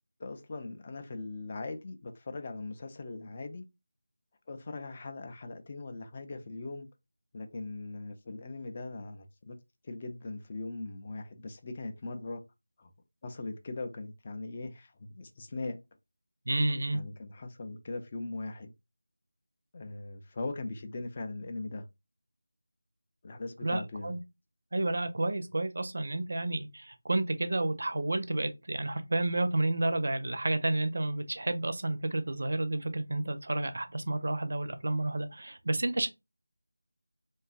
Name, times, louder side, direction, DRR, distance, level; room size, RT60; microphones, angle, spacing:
voice 1, 0.2-3.6 4.5-6.9 7.3-9.6 9.8-12.4 12.8-12.9 13.2-15.8 16.9-18.7 19.7-21.8 23.2-24.2, left 3 dB, 30° left, 0.3 m, -40 dB
voice 2, 16.5-17.0 23.6-24.2 24.7-36.1, right 2 dB, 55° right, 0.5 m, -30 dB
2.7 x 2.3 x 2.4 m
figure-of-eight pair, 165°, 0 cm